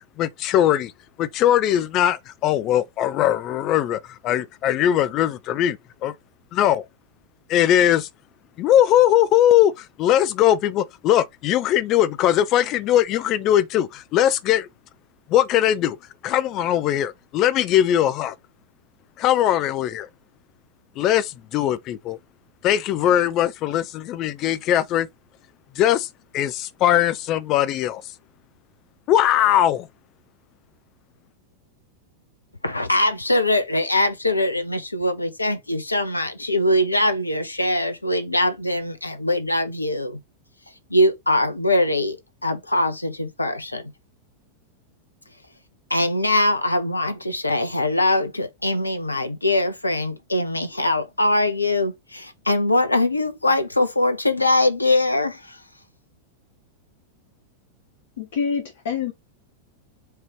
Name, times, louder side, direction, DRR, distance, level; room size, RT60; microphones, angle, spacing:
voice 1, 0.2-0.9 1.2-6.1 6.5-6.8 7.5-8.1 8.6-14.7 15.3-16.0 16.2-18.3 19.2-20.1 21.0-22.2 22.6-25.1 25.8-26.1 26.3-28.0 29.1-29.9, left 11 dB, 35° left, 0.4 m, -20 dB
voice 2, 32.6-40.2 40.9-42.2 42.4-43.8 45.9-55.6, left 1 dB, 85° left, 0.7 m, -22 dB
voice 3, 58.2-59.1, left 6 dB, 60° left, 1.0 m, -26 dB
4.7 x 2.9 x 3.0 m
figure-of-eight pair, 90°, 0 cm